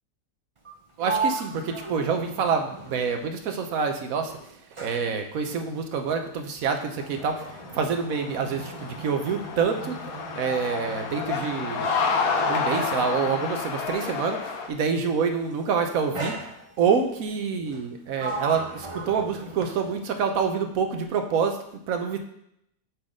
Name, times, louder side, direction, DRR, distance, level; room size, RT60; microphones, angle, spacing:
Sliding door, 0.6-3.9 4.2-14.3 15.2-15.5 16.1-17.1 17.7-20.2, right 4 dB, 30° right, 0.6 m, -37 dB
voice 1, 1.0-4.3 4.8-10.0 10.3-11.9 12.5-16.4 16.8-22.2, right 6 dB, 60° right, 5 dB, 1.3 m, -27 dB
sound 1, 7.0-14.7, left 5 dB, 60° left, 1.3 m, -30 dB
7.3 x 4.1 x 6.5 m, 0.74 s
omnidirectional pair, 1.8 m